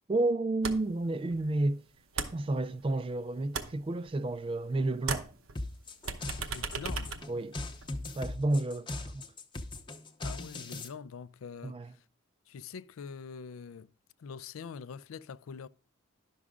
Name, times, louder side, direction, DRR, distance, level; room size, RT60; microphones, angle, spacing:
voice 1, 0.1-1.8 2.3-5.3 7.3-7.6 8.2-9.2 11.6-11.9, right 2 dB, 25° right, 0.3 m, -31 dB
sound 1, 0.6-1.0 1.3-3.1 3.4-4.7 5.0-8.0, right 5 dB, 80° right, 0.9 m, -38 dB
sound 2, 5.6-10.9, left 2 dB, 25° left, 0.7 m, -39 dB
voice 2, 6.5-7.2 10.2-12.0 12.5-13.9 14.2-15.7, left 6 dB, 85° left, 0.4 m, -44 dB
11.0 x 6.2 x 3.6 m
head